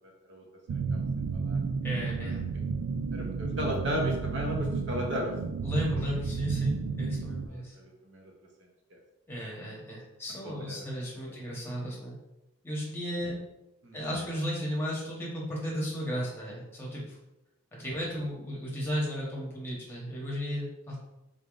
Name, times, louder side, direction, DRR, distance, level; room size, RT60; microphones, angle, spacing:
voice 1, 0.0-0.4 0.7-1.0 1.3-1.6 3.1-5.3 7.5-8.3 8.9-9.0 10.4-10.8 11.3-11.4 13.8-14.0, equal, 55° right, 0 dB, 0.8 m, -35 dB
sound 1, 0.7-7.5, right 5 dB, 80° right, 0.3 m, -32 dB
voice 2, 1.8-2.4 5.6-7.8 9.3-12.2 12.6-13.4 13.9-17.2 17.7-21.0, equal, 10° left, -5 dB, 1.0 m, -34 dB
3.9 x 3.4 x 2.4 m, 0.93 s
head